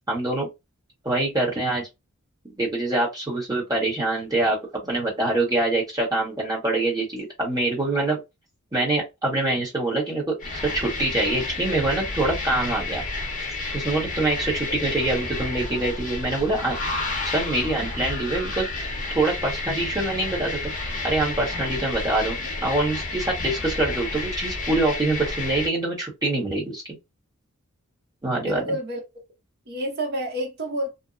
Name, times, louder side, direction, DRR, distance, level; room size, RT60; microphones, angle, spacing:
voice 1, 0.1-0.5 1.0-1.9 2.5-4.6 4.8-8.2 8.7-13.0 13.7-16.8 17.3-18.7 19.1-22.4 22.6-26.8 28.2-28.8, right 2 dB, 15° right, 1.1 m, -25 dB
sound 1, 10.4-25.7, left 3 dB, 35° left, 0.9 m, -31 dB
voice 2, 28.4-29.0 29.7-30.9, equal, 45° right, 1.0 m, -29 dB
2.6 x 2.1 x 2.4 m
head